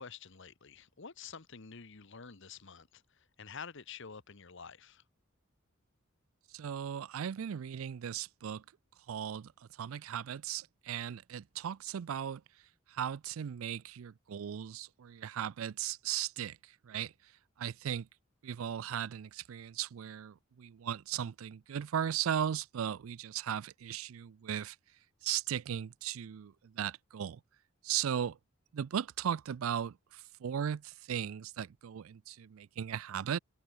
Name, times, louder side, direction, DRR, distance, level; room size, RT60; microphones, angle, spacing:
voice 1, 0.0-5.0, left 6 dB, 60° left, 1.2 m, -49 dB
voice 2, 6.5-8.6 9.1-9.5 9.8-12.4 12.9-17.1 17.6-18.1 18.4-24.8 25.2-27.4 27.8-28.4 28.7-33.4, right 9 dB, 80° right, 0.4 m, -37 dB
open air
head